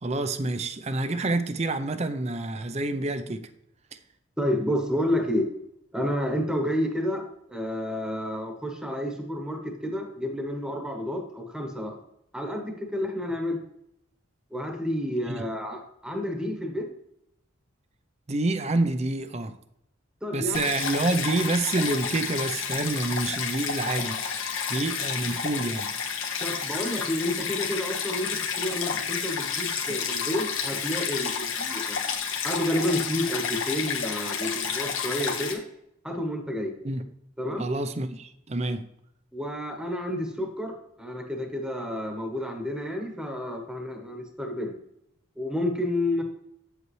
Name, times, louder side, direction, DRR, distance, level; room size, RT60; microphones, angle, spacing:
voice 1, 0.0-3.5 6.6-6.7 15.3-15.4 18.3-19.5 20.3-25.9 36.8-37.0 37.6-38.8, right 2 dB, 30° right, 0.6 m, -28 dB
voice 2, 4.4-5.5 5.9-12.0 12.3-13.6 14.5-16.9 20.2-20.6 26.4-32.0 32.4-35.6 36.0-36.7 37.4-37.7 39.3-44.7 45.4-46.2, left 1 dB, 5° right, 1.1 m, -30 dB
Stream, 20.5-35.5, left 6 dB, 75° left, 1.4 m, -30 dB
8.8 x 8.1 x 3.2 m
head